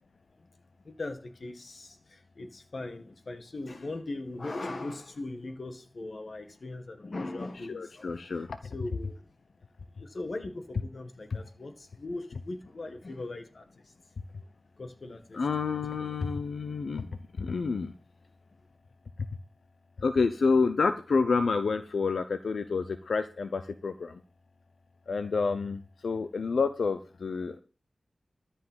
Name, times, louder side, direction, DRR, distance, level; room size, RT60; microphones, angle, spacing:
voice 1, 0.8-9.2 10.0-13.9 14.8-15.4 16.0-16.2, left 2 dB, 55° left, 1.8 m, -40 dB
voice 2, 7.7-8.5 15.3-17.1 17.4-17.9 20.0-24.1 25.1-27.6, left 4 dB, 85° left, 0.8 m, -28 dB
13.5 x 5.6 x 7.5 m
wide cardioid pair, 85°, 0 cm